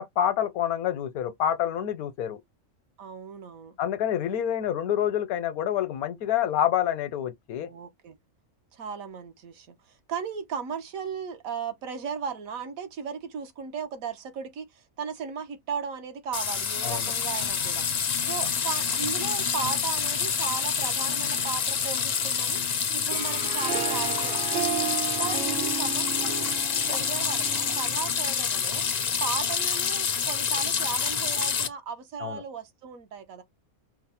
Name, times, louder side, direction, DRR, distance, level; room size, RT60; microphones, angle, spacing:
voice 1, 0.0-2.4 3.8-7.7 16.8-17.1 32.2-32.4, left 10 dB, 85° left, 1.2 m, -27 dB
voice 2, 3.0-3.8 7.6-8.2 8.7-17.8 18.2-22.6 22.9-24.8 25.2-26.5 26.9-28.8 29.2-33.4, right 6 dB, 75° right, 1.3 m, -36 dB
sound 1, 16.3-31.7, left 7 dB, 70° left, 0.4 m, -27 dB
Harp, 22.9-28.1, right 11 dB, 60° right, 0.6 m, -34 dB
4.6 x 2.1 x 4.2 m
omnidirectional pair, 1.5 m